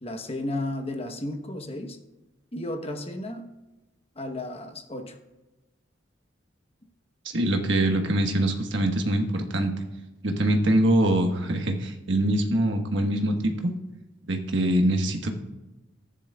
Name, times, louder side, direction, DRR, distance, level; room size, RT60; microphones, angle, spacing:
voice 1, 0.0-2.0 2.5-3.4 4.1-5.2, left 1 dB, 30° left, 5 dB, 1.1 m, -33 dB
voice 2, 7.2-9.7 10.2-13.7 14.3-15.4, right 1 dB, 75° right, 4 dB, 1.3 m, -24 dB
14.0 x 10.0 x 2.4 m, 1.0 s
head